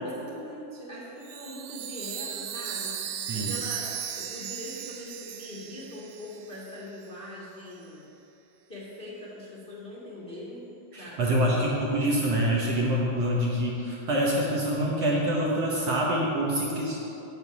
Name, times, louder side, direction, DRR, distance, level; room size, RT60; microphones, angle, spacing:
voice 1, 0.0-3.9 4.1-8.1 8.7-10.7 11.0-11.6, left 1 dB, 35° left, -7 dB, 0.9 m, -42 dB
Chime, 1.2-6.8, right 8 dB, 80° right, 1.5 m, -36 dB
voice 2, 10.9-17.0, equal, 65° right, -3 dB, 1.7 m, -26 dB
9.1 x 6.3 x 8.4 m, 2.9 s
omnidirectional pair, 3.9 m